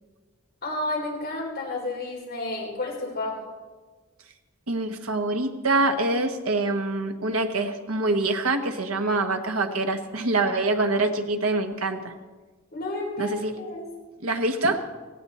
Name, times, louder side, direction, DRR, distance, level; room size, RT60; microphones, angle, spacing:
voice 1, 0.6-3.4 12.7-13.9, left 2 dB, 45° left, -3 dB, 4.0 m, -31 dB
voice 2, 4.7-12.1 13.2-13.6 14.2-14.8, right 2 dB, 80° right, 6 dB, 1.2 m, -25 dB
17.5 x 16.0 x 4.2 m, 1.3 s
head